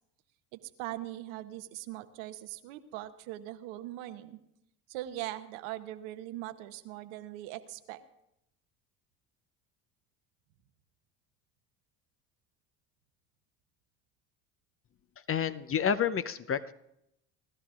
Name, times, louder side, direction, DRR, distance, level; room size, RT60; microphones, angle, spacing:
voice 1, 0.5-4.4 4.9-8.0, right 14 dB, 75° right, 10 dB, 1.1 m, -41 dB
voice 2, 15.3-16.7, left 8 dB, 30° left, 13 dB, 0.6 m, -29 dB
29.5 x 12.5 x 2.4 m, 0.80 s
hypercardioid pair, 75°, 46 cm